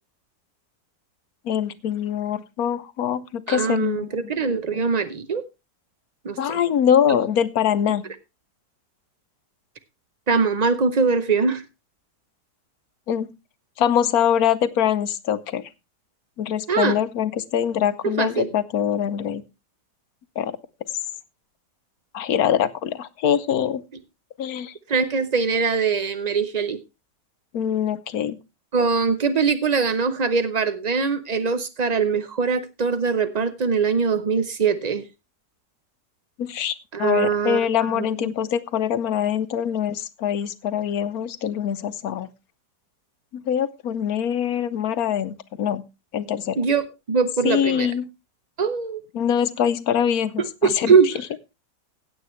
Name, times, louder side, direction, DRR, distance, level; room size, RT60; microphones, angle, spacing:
voice 1, 1.5-4.3 4.7-4.8 6.4-8.0 13.1-13.3 13.8-15.6 16.4-19.4 20.4-20.6 22.1-23.8 24.4-24.7 27.5-28.4 36.4-42.3 43.3-45.8 46.1-46.6 47.4-48.1 49.1-51.1, left 9 dB, 65° left, 15 dB, 1.1 m, -23 dB
voice 2, 3.5-5.4 6.2-6.6 10.3-11.6 16.7-17.0 18.2-18.5 24.9-26.8 28.7-35.0 36.9-37.6 37.9-38.0 46.6-47.9 48.6-49.0 50.6-51.1, right 5 dB, 65° right, 11 dB, 0.4 m, -22 dB
16.0 x 8.5 x 3.1 m, 0.26 s
omnidirectional pair, 1.8 m